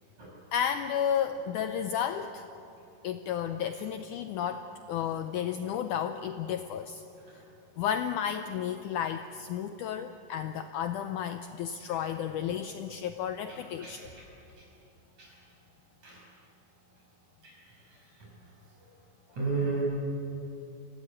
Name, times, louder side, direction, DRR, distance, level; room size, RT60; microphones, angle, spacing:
voice 1, 0.5-2.5 3.0-7.0 7.8-14.1, left 9 dB, 85° left, 8 dB, 1.8 m, -32 dB
voice 2, 13.5-14.3 14.6-14.7 15.2-15.3 16.0-16.2 17.4-17.7 19.3-19.8, right 4 dB, 45° right, -3 dB, 7.4 m, -34 dB
25.0 x 17.0 x 9.8 m, 2.9 s
omnidirectional pair, 4.4 m